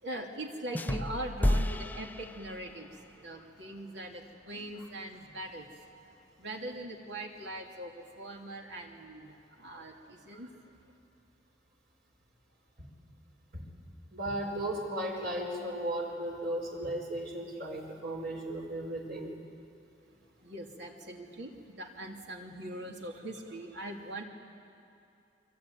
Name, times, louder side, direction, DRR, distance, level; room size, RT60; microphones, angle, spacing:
voice 1, 0.0-5.9 6.4-10.5 20.4-24.2, right 1 dB, 80° right, 1 dB, 2.9 m, -42 dB
sound 1, 0.7-2.9, left 1 dB, 10° left, 0.5 m, -31 dB
voice 2, 14.1-19.3, right 1 dB, 65° right, 0 dB, 4.5 m, -35 dB
25.5 x 24.0 x 9.4 m, 2.6 s
head